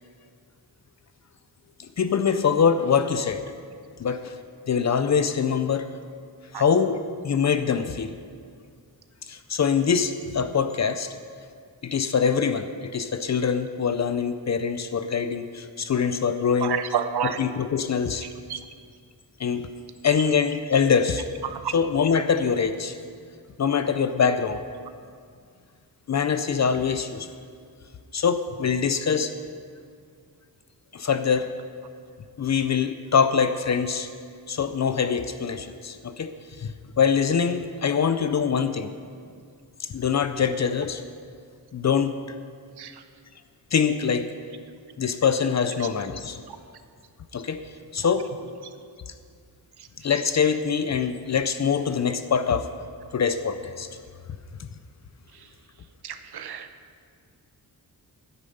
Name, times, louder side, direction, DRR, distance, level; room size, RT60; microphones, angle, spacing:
voice 1, 1.8-3.4 4.0-4.4 4.7-5.9 6.5-8.2 9.2-11.1 11.8-16.8 17.2-18.3 19.4-19.6 20.0-21.3 21.7-23.0 23.6-24.6 26.1-27.3 28.1-29.3 30.9-31.5 32.4-34.1 34.5-38.9 39.8-41.0 41.7-42.1 43.7-44.3 45.0-46.4 47.3-47.6 47.9-48.3 50.0-52.7 53.1-53.9 54.6-54.7, left 6 dB, 45° left, 10 dB, 0.5 m, -24 dB
voice 2, 16.6-17.4 18.5-18.6 42.8-42.9 56.0-56.7, right 8 dB, 85° right, 9 dB, 0.8 m, -28 dB
12.0 x 9.5 x 5.4 m, 2.1 s
wide cardioid pair, 155°, 38 cm